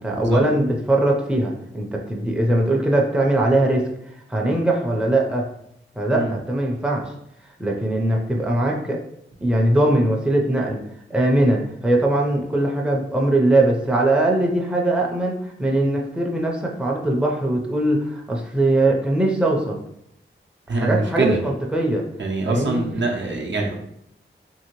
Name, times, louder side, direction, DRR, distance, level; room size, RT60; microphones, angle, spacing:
voice 1, 0.0-3.9 4.3-5.5 6.0-7.1 7.6-9.0 9.4-10.8 11.1-19.8 20.7-22.0 22.5-22.8, right 1 dB, 5° right, -1 dB, 0.5 m, -21 dB
voice 2, 20.7-21.4 22.2-23.7, right 3 dB, 60° right, 0 dB, 0.6 m, -24 dB
2.8 x 2.7 x 2.9 m, 0.76 s
wide cardioid pair, 65°, 21 cm